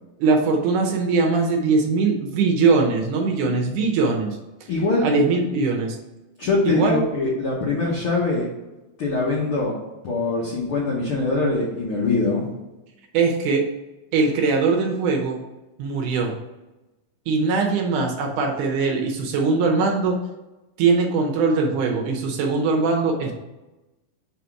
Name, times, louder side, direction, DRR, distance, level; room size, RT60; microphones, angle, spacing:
voice 1, 0.2-4.4 5.0-6.0 6.7-7.0 13.1-13.6 14.1-15.4 15.8-16.3 17.3-20.2 20.8-23.3, right 4 dB, 75° right, 2 dB, 2.1 m, -21 dB
voice 2, 4.7-5.1 6.4-8.5 9.0-9.7 10.0-12.4, left 3 dB, 80° left, -4 dB, 1.2 m, -23 dB
5.1 x 4.1 x 4.6 m, 1.0 s
omnidirectional pair, 4.0 m